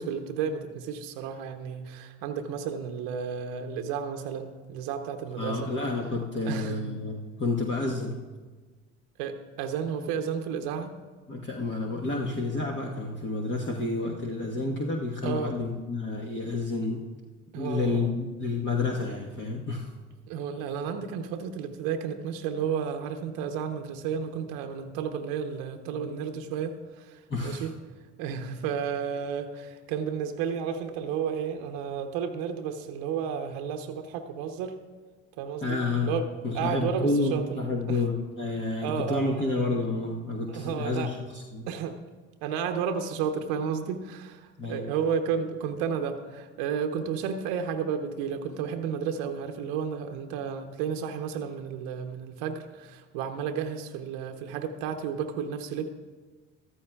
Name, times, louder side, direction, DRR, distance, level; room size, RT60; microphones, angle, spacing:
voice 1, 0.0-5.7 6.5-6.8 9.2-10.9 15.2-15.6 17.5-18.2 20.3-27.7 28.2-34.8 35.4-35.8 36.0-36.3 36.5-37.4 37.9-38.0 38.8-39.3 40.5-41.1 41.7-42.0 42.4-55.9, right 7 dB, 70° right, 6 dB, 0.9 m, -32 dB
voice 2, 5.4-8.2 11.3-17.0 17.6-19.9 27.3-27.7 35.6-36.2 36.4-41.6 44.6-44.9, left 3 dB, 30° left, -1 dB, 1.3 m, -30 dB
14.5 x 13.0 x 2.3 m, 1.4 s
hypercardioid pair, 65°, 36 cm